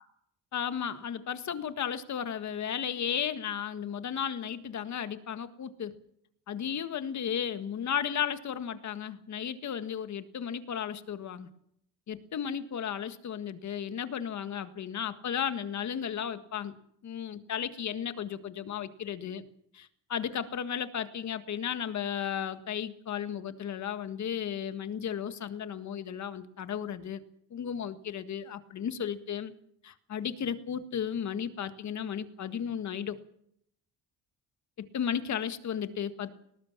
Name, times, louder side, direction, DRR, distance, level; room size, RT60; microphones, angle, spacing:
voice 1, 0.5-6.0 6.5-11.5 12.1-16.7 17.0-19.4 19.7-27.2 27.5-29.5 29.8-33.2 34.8-36.3, left 8 dB, 45° left, 11 dB, 1.7 m, -34 dB
20.5 x 19.0 x 7.4 m, 0.72 s
cardioid pair, 130°, 38 cm